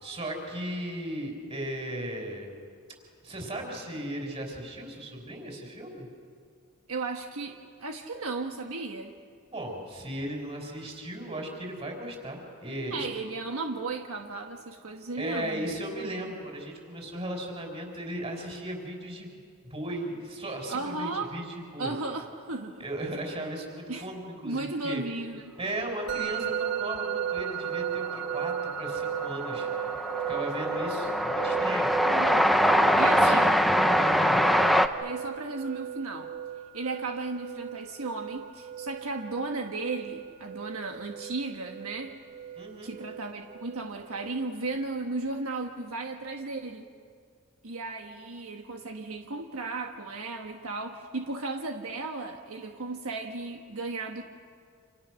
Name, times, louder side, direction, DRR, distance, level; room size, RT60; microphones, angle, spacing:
voice 1, 0.0-2.5 3.2-6.1 9.5-13.1 15.2-19.4 19.7-21.9 22.8-25.0 25.6-29.7 30.3-31.9 32.8-33.4 33.9-34.4 42.6-43.0, right 1 dB, 25° right, 2 dB, 5.4 m, -36 dB
voice 2, 6.9-9.1 12.9-15.7 20.7-21.3 21.8-22.8 23.9-24.1 24.4-25.6 32.0-32.5 33.0-33.5 35.0-36.3 36.7-42.2 42.8-46.9 47.6-54.2, right 3 dB, 75° right, 3 dB, 1.4 m, -35 dB
Musical instrument, 26.1-45.0, right 9 dB, 50° right, 1.5 m, -36 dB
Train, 27.4-27.5 27.7-34.9, equal, ahead, 0.7 m, -24 dB
28.5 x 28.0 x 6.4 m, 2.2 s
head